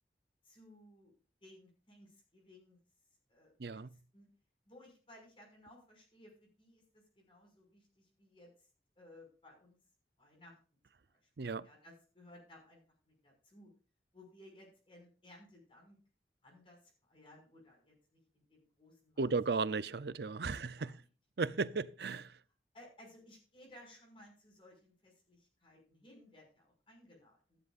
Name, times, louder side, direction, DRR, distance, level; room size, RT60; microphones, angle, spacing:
voice 1, 0.4-1.1 1.4-2.8 3.3-4.3 4.7-8.7 9.0-9.8 10.2-10.6 11.2-13.7 14.1-16.0 16.4-19.3 20.5-21.1 21.6-21.7 22.7-27.6, left 1 dB, 30° left, 5.9 m, -60 dB
voice 2, 19.2-20.7 21.4-22.3, right 4 dB, 65° right, 0.6 m, -35 dB
14.0 x 13.0 x 2.5 m
head